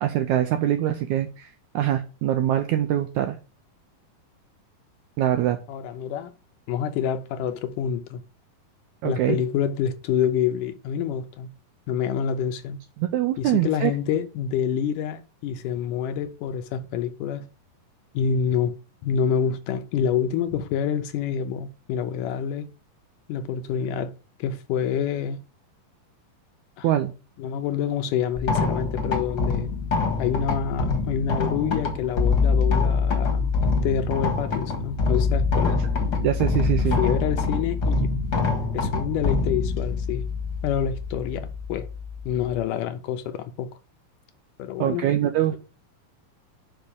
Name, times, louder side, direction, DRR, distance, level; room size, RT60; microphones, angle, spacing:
voice 1, 0.0-3.4 5.2-5.6 9.0-9.4 13.0-13.9 26.8-27.1 36.2-37.0 44.8-45.6, right 12 dB, 80° right, 1.7 m, -23 dB
voice 2, 5.7-6.3 6.7-8.2 9.0-11.5 11.9-12.8 13.4-17.5 18.1-18.7 19.0-22.7 23.3-24.1 24.4-25.4 26.8-26.9 27.4-29.7 30.2-33.5 33.8-35.8 36.8-38.1 38.7-40.2 40.6-41.9 42.3-43.7 44.6-45.1, left 8 dB, 80° left, 2.1 m, -27 dB
sound 1, 28.3-42.6, left 4 dB, 45° left, 1.4 m, -25 dB
5.8 x 5.4 x 6.6 m
omnidirectional pair, 4.1 m